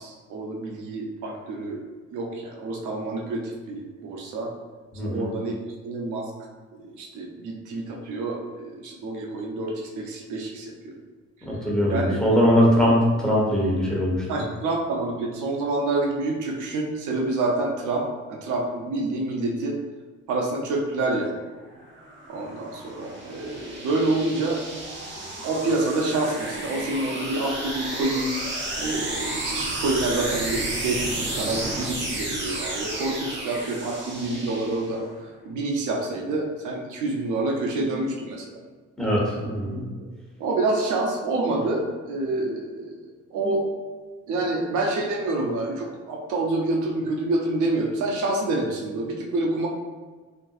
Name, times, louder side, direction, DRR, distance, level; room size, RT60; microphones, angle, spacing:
voice 1, 0.0-1.8 2.1-4.5 5.0-5.6 5.8-6.3 6.8-10.9 11.9-12.2 14.3-19.8 20.3-21.4 22.3-24.6 25.4-35.0 35.5-38.4 40.4-43.0 43.3-43.6 44.3-49.7, right 2 dB, 80° right, 0 dB, 0.6 m, -27 dB
voice 2, 4.9-5.2 11.5-14.2 39.0-39.8, equal, ahead, -5 dB, 1.0 m, -21 dB
sound 1, 21.7-35.2, right 1 dB, 40° right, 0.8 m, -32 dB
3.6 x 2.6 x 2.4 m, 1.4 s
cardioid pair, 90°, 30 cm